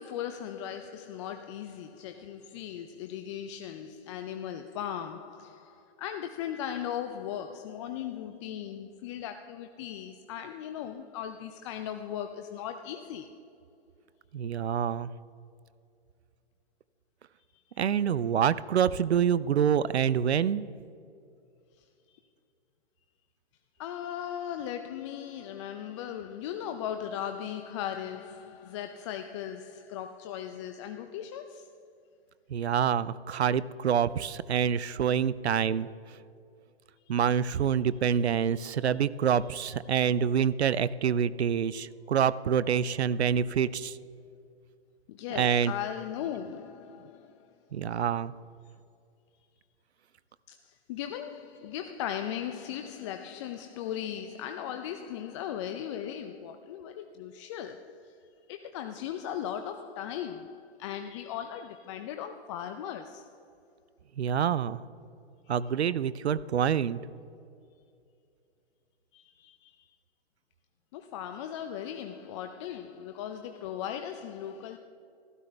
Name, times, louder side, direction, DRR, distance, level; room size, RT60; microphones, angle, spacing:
voice 1, 0.0-13.4 17.7-17.9 22.1-22.2 23.8-31.7 37.1-37.2 38.6-38.7 39.9-40.0 45.1-47.5 47.9-48.0 50.5-58.2 58.5-63.3 65.5-65.6 69.1-69.9 70.9-74.8, left 9 dB, 30° left, 0.4 m, -38 dB
voice 2, 14.3-15.1 17.8-20.7 32.5-35.9 37.1-43.9 45.4-45.7 47.7-48.3 64.2-64.8 65.5-67.0, right 8 dB, 85° right, 0.5 m, -26 dB
14.5 x 12.5 x 3.3 m
hypercardioid pair, 120°, 32 cm